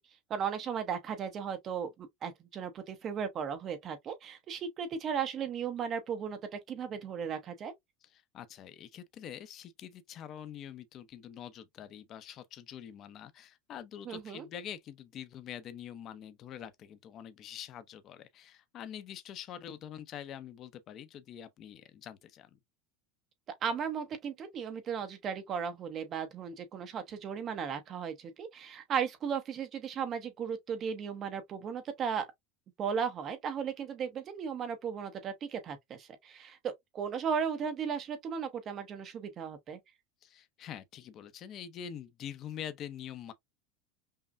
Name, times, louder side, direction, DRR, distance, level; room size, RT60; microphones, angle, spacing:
voice 1, 0.3-7.7 14.0-14.5 23.6-32.3 32.8-39.8, right 7 dB, 35° right, 0.9 m, -36 dB
voice 2, 8.0-22.6 40.2-43.3, left 9 dB, 40° left, 0.6 m, -45 dB
5.6 x 2.1 x 2.5 m
supercardioid pair, 140°, 0 cm